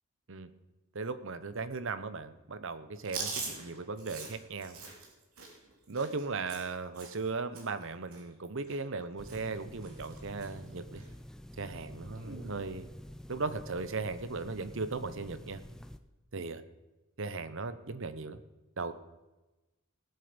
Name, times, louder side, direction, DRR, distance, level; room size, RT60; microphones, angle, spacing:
voice 1, 0.9-4.8 5.9-11.0 11.6-12.9 13.3-15.6 16.3-16.6 17.2-18.4 18.8-18.9, right 4 dB, 60° right, 12 dB, 0.9 m, -37 dB
Chewing mastication, 3.0-7.3 7.5-7.8 8.1-9.0 9.3-9.6 9.8-10.5 10.9-11.1 12.1-12.5, right 4 dB, 80° right, 2.9 m, -43 dB
sound 1, 9.2-16.0, equal, 5° left, 0.5 m, -48 dB
18.5 x 7.9 x 5.2 m, 1.1 s
head